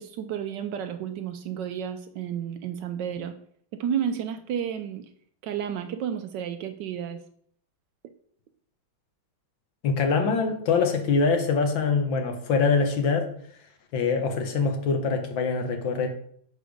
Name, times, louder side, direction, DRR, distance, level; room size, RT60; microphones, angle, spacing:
voice 1, 0.0-3.4 3.7-5.1 5.4-7.2, right 8 dB, 75° right, 9 dB, 1.1 m, -31 dB
voice 2, 9.8-13.3 13.9-16.1, left 5 dB, 75° left, 5 dB, 1.8 m, -24 dB
6.5 x 5.0 x 5.1 m, 0.63 s
omnidirectional pair, 2.2 m